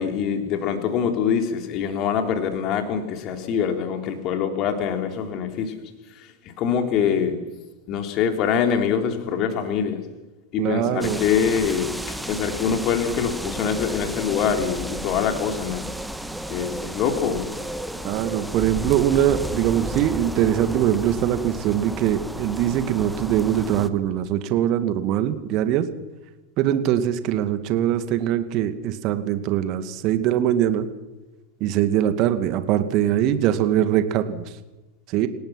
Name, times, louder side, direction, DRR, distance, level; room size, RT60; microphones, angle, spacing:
voice 1, 0.0-5.7 6.6-7.4 7.9-10.0 10.5-15.8 16.5-17.5, left 7 dB, 35° left, 5 dB, 3.7 m, -24 dB
voice 2, 10.6-11.2 18.0-25.9 26.6-30.9 31.6-34.4 35.1-35.3, right 11 dB, 40° right, 10 dB, 2.2 m, -22 dB
sound 1, 11.0-23.9, right 1 dB, ahead, 1.4 m, -33 dB
28.5 x 18.5 x 6.1 m, 1.1 s
figure-of-eight pair, 90°, 0 cm